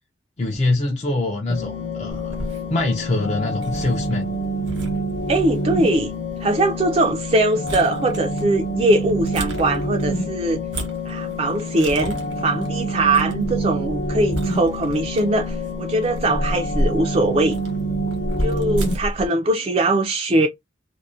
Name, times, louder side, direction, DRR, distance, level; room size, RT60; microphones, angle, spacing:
voice 1, 0.4-2.3 2.7-4.3, left 2 dB, 35° left, 0.4 m, -24 dB
sound 1, 1.5-18.9, equal, 80° left, 0.8 m, -27 dB
sound 2, 2.1-19.3, equal, 85° right, 1.0 m, -33 dB
voice 2, 5.3-6.1 6.4-10.6 11.1-17.6 18.4-20.5, right 2 dB, 30° right, 0.3 m, -21 dB
2.6 x 2.1 x 2.3 m
head